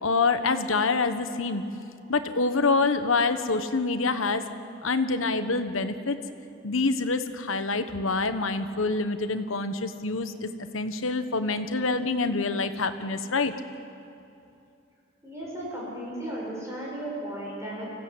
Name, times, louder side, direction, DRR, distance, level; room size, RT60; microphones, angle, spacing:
voice 1, 0.0-1.6 2.1-4.4 4.8-6.2 6.6-13.5, left 3 dB, 75° left, 9 dB, 1.2 m, -26 dB
voice 2, 15.2-17.9, right 1 dB, 15° right, -5 dB, 7.6 m, -35 dB
24.5 x 16.5 x 8.7 m, 2.7 s
head